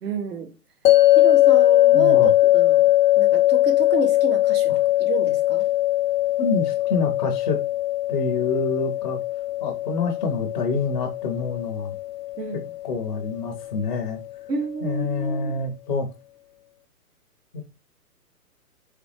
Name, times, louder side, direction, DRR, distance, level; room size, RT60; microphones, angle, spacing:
voice 1, 0.0-0.5 1.2-2.9 3.2-4.7 5.0-5.7 12.4-12.7 14.5-15.6, right 5 dB, 85° right, 1.1 m, -30 dB
sound 1, 0.8-14.0, left 15 dB, 80° left, 0.6 m, -20 dB
voice 2, 1.9-2.3 6.4-7.6 8.1-9.2 9.6-11.9 12.8-14.2 14.8-16.1 17.5-17.6, left 4 dB, 30° left, 0.4 m, -27 dB
4.1 x 3.3 x 3.1 m
hypercardioid pair, 140°, 47 cm